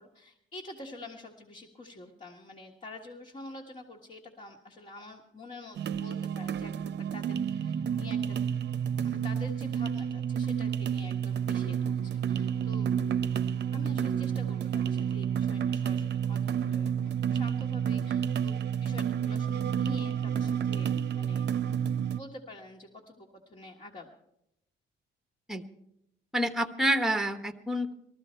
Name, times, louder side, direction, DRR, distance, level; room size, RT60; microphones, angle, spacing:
voice 1, 0.0-8.4 9.0-12.9 13.7-21.6 22.1-24.1, left 2 dB, 35° left, -1 dB, 1.6 m, -47 dB
sound 1, 5.8-22.2, right 8 dB, 60° right, 0.6 m, -30 dB
voice 2, 26.3-27.9, right 1 dB, ahead, 8 dB, 1.1 m, -28 dB
19.0 x 14.0 x 4.4 m, 0.81 s
cardioid pair, 90°, 20 cm